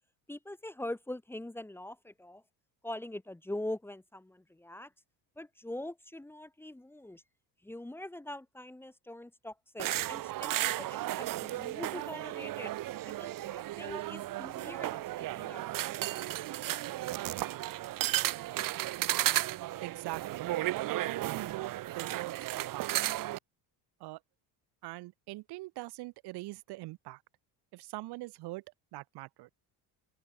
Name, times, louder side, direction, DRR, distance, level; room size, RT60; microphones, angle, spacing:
voice 1, 0.3-2.4 2.8-4.9 5.4-7.2 7.6-12.7 13.0-15.6, left 1 dB, 5° left, 2.7 m, -43 dB
sound 1, 9.8-23.4, right 15 dB, 55° right, 2.3 m, -34 dB
voice 2, 19.8-20.4 20.7-23.1 24.0-24.2 24.8-27.2 27.7-28.6 28.9-29.5, right 20 dB, 75° right, 5.5 m, -42 dB
open air
cardioid pair, 150°, 40 cm